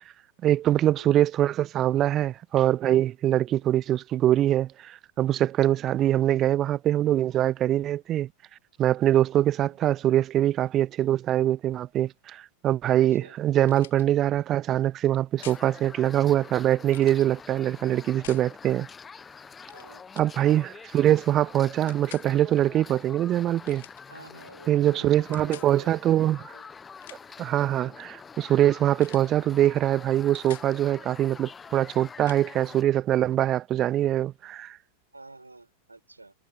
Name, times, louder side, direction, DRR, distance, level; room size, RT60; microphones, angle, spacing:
voice 1, 0.4-8.3 8.8-18.9 20.2-23.8 24.7-26.4 27.4-34.8, right 12 dB, 30° right, 0.3 m, -23 dB
sound 1, 13.7-14.0 15.4-15.7 16.9-17.3 18.2-18.5 19.6-19.9 20.1-20.4 21.9-22.3 23.6-24.0 25.3-25.7 26.8-27.4 29.0-29.3 29.6-29.8 30.1-30.7 32.3-32.4, left 14 dB, 55° left, 1.4 m, -47 dB
sound 2, 15.4-32.8, left 5 dB, 15° left, 1.2 m, -46 dB
voice 2, 19.7-20.0 24.1-26.7 35.1-36.3, right 2 dB, 80° right, 7.1 m, -48 dB
figure-of-eight pair, 90°, 0 cm